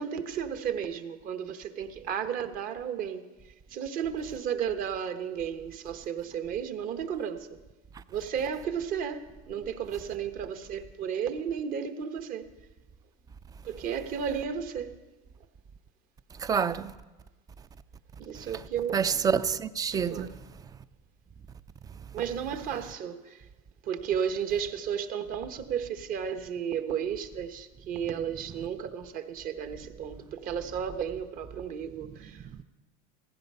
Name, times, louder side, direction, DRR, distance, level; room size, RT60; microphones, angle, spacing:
voice 1, 0.0-3.2 3.7-7.5 8.1-12.5 13.6-14.9 18.2-19.0 19.9-20.4 22.1-23.4 23.8-32.6, right 8 dB, 45° right, 1.1 m, -33 dB
voice 2, 16.4-16.9 18.9-20.3, right 6 dB, 20° right, 0.4 m, -27 dB
16.0 x 14.5 x 5.5 m
supercardioid pair, 135°, 20 cm